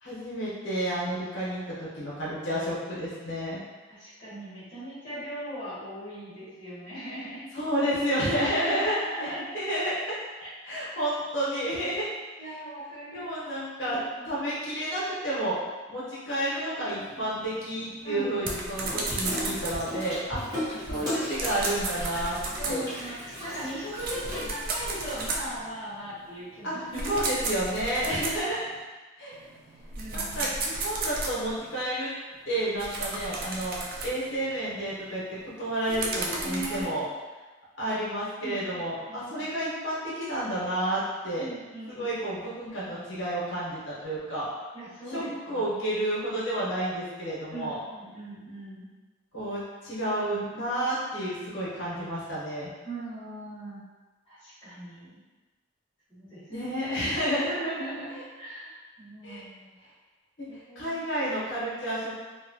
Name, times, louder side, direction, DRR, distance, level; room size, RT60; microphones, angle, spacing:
voice 1, 0.0-3.6 7.5-8.9 9.2-10.0 10.6-12.0 12.4-12.5 13.1-14.0 14.2-15.6 15.9-22.4 22.7-22.8 26.6-26.8 27.1-28.6 29.2-29.4 30.1-32.1 32.5-35.2 35.6-37.1 37.8-41.5 41.9-44.5 45.1-47.8 49.3-52.7 56.5-57.5 59.2-59.4 60.4-60.5 60.8-62.2, right 1 dB, 65° left, -8 dB, 0.9 m, -30 dB
voice 2, 3.9-7.4 8.5-9.5 10.4-10.5 12.4-13.3 13.8-14.3 16.6-17.3 18.0-18.3 20.4-21.1 22.6-27.4 29.9-30.5 35.9-36.9 38.4-39.5 41.4-42.2 42.7-42.8 44.7-45.3 45.6-45.7 47.5-48.9 52.8-53.8 54.3-55.2 56.1-56.4 57.4-59.7 60.5-61.0, right 1 dB, 25° left, -11 dB, 0.9 m, -39 dB
sound 1, 17.0-28.8 29.3-31.8 32.3-36.8, right 3 dB, 45° right, 0.3 m, -35 dB
Water tap faucet / Sink (filling or washing), 18.8-24.9, equal, 20° right, 0.9 m, -36 dB
2.9 x 2.2 x 2.6 m, 1.3 s
head